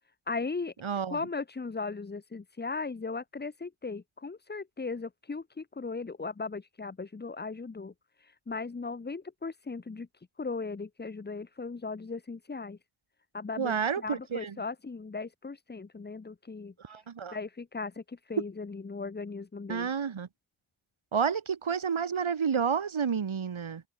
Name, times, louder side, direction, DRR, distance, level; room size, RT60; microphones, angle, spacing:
voice 1, 0.3-0.7 1.1-7.9 8.2-12.8 13.3-17.0 17.3-19.9, left 4 dB, 20° left, 0.6 m, -37 dB
voice 2, 0.8-1.2 13.6-14.6 16.8-17.4 19.7-20.3 21.1-23.8, right 6 dB, 80° right, 2.0 m, -30 dB
wide cardioid pair, 90°, 47 cm